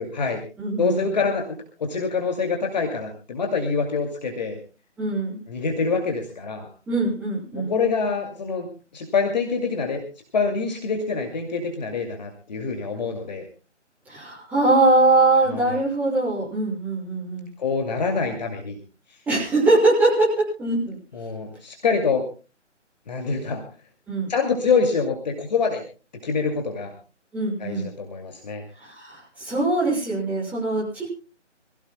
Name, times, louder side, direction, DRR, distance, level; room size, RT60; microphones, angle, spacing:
voice 1, 0.0-0.4 0.8-4.6 5.5-6.7 7.5-8.7 8.9-10.0 10.3-13.5 15.5-15.8 17.6-18.8 19.1-19.2 21.1-22.2 23.1-23.6 24.3-25.8 26.2-26.9 27.6-28.6, left 5 dB, 35° left, 3 dB, 2.4 m, -25 dB
voice 2, 0.6-1.1 5.0-5.4 6.9-7.8 14.1-17.5 19.3-21.0 24.1-24.3 27.3-27.9 28.8-31.1, right 2 dB, 5° right, -8 dB, 6.5 m, -22 dB
27.0 x 16.5 x 2.2 m, 0.34 s
figure-of-eight pair, 165°, 37 cm